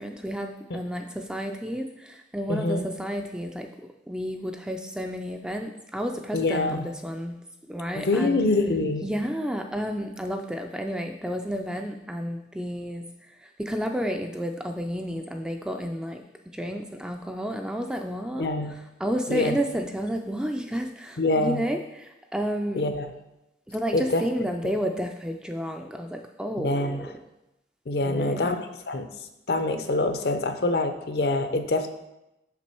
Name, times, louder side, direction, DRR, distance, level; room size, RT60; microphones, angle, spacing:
voice 1, 0.0-7.4 7.7-8.4 9.0-16.2 16.5-22.9 23.7-27.2 28.0-28.5, equal, 5° right, 5 dB, 0.3 m, -31 dB
voice 2, 2.5-2.8 6.3-6.8 7.9-9.1 18.4-18.7 19.3-19.5 21.2-21.6 22.7-23.1 23.9-24.2 24.6-24.7 26.6-27.0 27.9-29.1 29.5-31.9, left 2 dB, 60° left, 8 dB, 0.6 m, -25 dB
6.1 x 6.0 x 4.4 m, 0.91 s
head